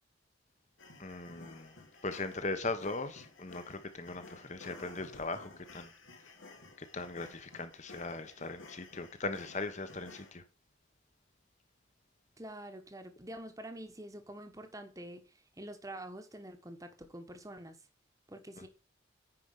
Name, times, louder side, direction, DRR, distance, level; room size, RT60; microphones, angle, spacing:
sound 1, 0.8-10.3, left 3 dB, 80° left, 2.5 m, -54 dB
voice 1, 1.0-1.7 2.0-5.9 6.8-10.4 18.6-18.7, left 3 dB, 35° left, 1.2 m, -39 dB
voice 2, 12.4-17.8 18.3-18.7, right 1 dB, 15° right, 1.3 m, -46 dB
9.8 x 5.2 x 4.9 m
head